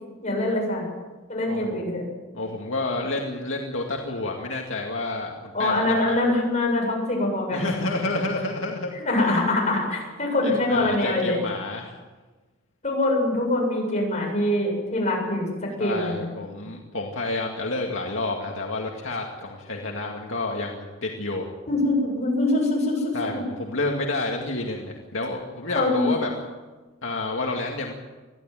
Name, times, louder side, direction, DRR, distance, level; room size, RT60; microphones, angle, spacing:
voice 1, 0.2-0.8 1.3-2.0 5.5-7.7 9.0-11.4 12.8-16.3 21.7-23.4 25.7-26.1, left 1 dB, 35° left, -1 dB, 8.0 m, -24 dB
voice 2, 1.5-1.8 2.3-6.2 7.5-8.9 10.4-12.0 15.8-21.5 23.1-26.3 27.0-27.9, left 2 dB, 70° left, 0 dB, 2.2 m, -29 dB
23.0 x 15.0 x 9.2 m, 1.3 s
head